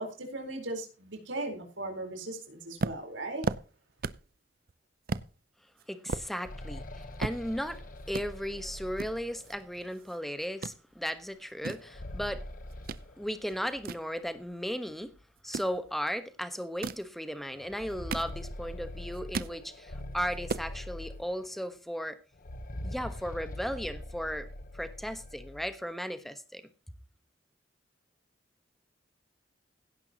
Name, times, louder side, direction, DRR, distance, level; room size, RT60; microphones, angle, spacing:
voice 1, 0.0-3.4, right 2 dB, 90° right, 4.3 m, -38 dB
sound 1, 2.8-4.4 4.7-4.8 5.1-5.3 5.8-7.8 8.1-8.3 9.0-10.2 10.4-10.8 11.4-13.1 13.5-14.8 15.4-15.8 16.6-17.1 17.7-18.7 19.0-19.6 20.0-20.1 20.3-20.7, right 4 dB, 50° right, 0.6 m, -36 dB
voice 2, 5.9-7.8 8.1-12.4 13.2-15.1 15.4-22.2 22.8-24.5 24.7-26.6, equal, ahead, 1.1 m, -36 dB
sound 2, 6.2-9.9 11.7-13.9 14.2-14.3 15.2-15.3 15.7-15.9 17.5-21.7 22.3-25.7, left 1 dB, 50° left, 1.1 m, -43 dB
16.5 x 10.5 x 2.9 m
head